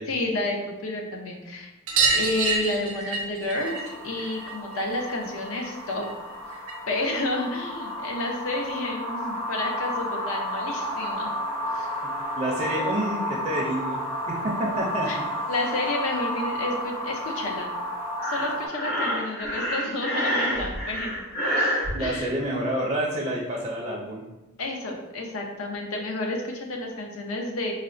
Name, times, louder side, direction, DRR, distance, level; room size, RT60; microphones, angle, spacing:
voice 1, 0.1-1.7 2.1-3.8 4.0-6.1 6.5-11.3 11.7-11.9 15.1-15.2 15.5-17.7 18.2-21.2 22.0-22.3 24.6-27.7, left 2 dB, 70° left, 2 dB, 0.6 m, -30 dB
sound 1, 1.9-7.0 7.3-8.4 9.8-9.9 10.1-10.2 10.5-10.6 11.9-12.0 12.3-12.4 12.7-12.8 14.0-14.1 14.9-15.0, right 4 dB, 90° right, 0.6 m, -29 dB
sound 2, 3.5-18.7, equal, 25° left, 0.6 m, -32 dB
voice 2, 12.4-15.1 21.9-24.2, right 1 dB, 25° right, -2 dB, 0.4 m, -28 dB
Breathing, 18.2-21.9, equal, 45° left, 1.0 m, -27 dB
4.1 x 2.0 x 2.5 m, 1.0 s
head